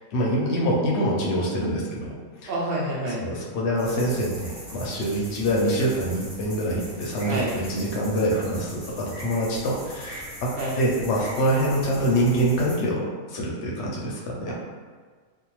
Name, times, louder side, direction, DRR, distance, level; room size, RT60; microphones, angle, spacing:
voice 1, 0.1-2.1 2.4-2.5 3.2-14.5, equal, 60° left, -3 dB, 0.8 m, -25 dB
voice 2, 2.5-3.2 7.3-7.6 10.6-10.8 14.5-14.6, right 1 dB, 75° right, -4 dB, 0.5 m, -28 dB
sound 1, 3.8-12.8, equal, 25° left, 0.5 m, -41 dB
2.6 x 2.0 x 2.9 m, 1.5 s
omnidirectional pair, 1.5 m